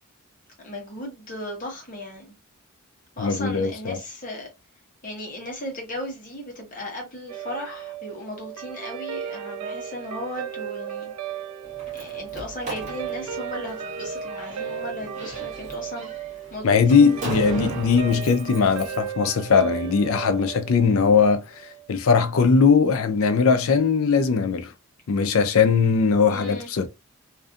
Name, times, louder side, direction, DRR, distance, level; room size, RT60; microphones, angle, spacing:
voice 1, 0.6-2.4 3.2-4.5 5.0-11.3 11.9-16.1 16.5-17.5 26.3-26.7, left 1 dB, 35° left, 0.9 m, -36 dB
voice 2, 3.2-4.0 16.6-21.4 21.9-24.7 25.1-26.9, left 5 dB, 70° left, 0.4 m, -20 dB
Guitar, 7.3-21.9, right 8 dB, 85° right, 0.4 m, -35 dB
Slam, 11.6-19.1, right 1 dB, 35° right, 0.9 m, -37 dB
2.5 x 2.5 x 2.3 m
head